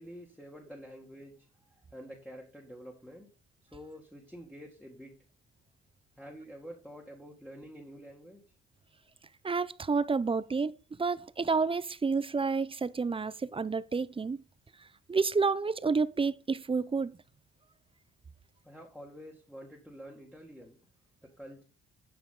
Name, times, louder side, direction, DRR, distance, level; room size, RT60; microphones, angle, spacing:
voice 1, 0.0-3.3 3.7-5.2 6.2-8.4 18.6-20.8 21.2-21.6, equal, 5° left, 1.8 m, -48 dB
voice 2, 9.4-14.4 15.1-17.2, right 4 dB, 20° right, 0.4 m, -30 dB
9.2 x 5.0 x 3.8 m
cardioid pair, 90°, 30 cm